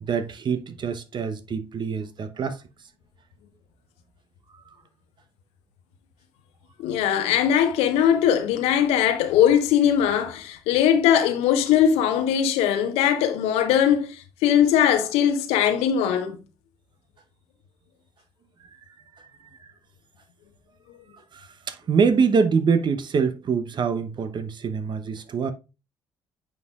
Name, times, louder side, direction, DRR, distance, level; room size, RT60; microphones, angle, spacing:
voice 1, 0.0-2.6 21.3-25.5, right 5 dB, 45° right, 0.9 m, -24 dB
voice 2, 6.8-16.4, left 9 dB, 70° left, 0.9 m, -20 dB
9.3 x 5.2 x 2.4 m
figure-of-eight pair, 45°, 11 cm